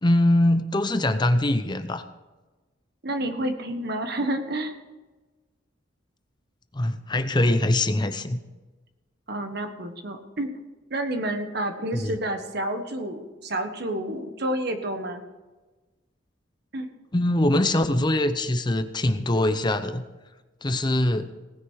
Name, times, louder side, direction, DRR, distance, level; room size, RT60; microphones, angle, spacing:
voice 1, 0.0-2.0 6.7-8.4 11.9-12.2 17.1-20.0 20.6-21.3, left 1 dB, 25° left, 9 dB, 0.7 m, -23 dB
voice 2, 3.0-4.7 9.3-10.5 10.9-15.2 16.7-16.9, right 1 dB, 55° right, 7 dB, 1.4 m, -29 dB
18.0 x 9.9 x 4.7 m, 1.2 s
head